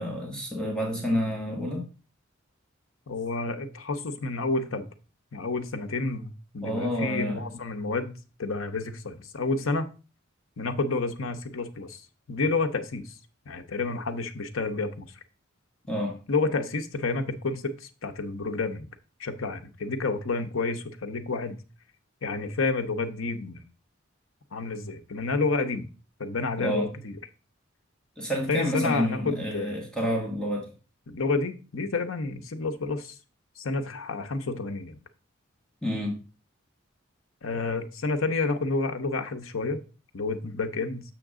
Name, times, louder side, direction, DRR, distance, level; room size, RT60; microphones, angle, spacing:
voice 1, 0.0-1.9 6.6-7.5 15.9-16.2 26.6-26.9 28.2-30.7 35.8-36.2, equal, 5° left, -1 dB, 1.6 m, -29 dB
voice 2, 3.1-4.9 5.3-8.1 8.4-9.9 10.6-13.2 13.5-15.1 16.3-18.9 19.2-21.6 22.2-23.6 24.5-25.9 26.2-27.2 28.5-29.8 31.1-33.2 33.6-35.0 37.4-39.8 40.1-41.0, left 3 dB, 80° left, 9 dB, 0.8 m, -30 dB
7.0 x 6.0 x 3.6 m, 0.34 s
head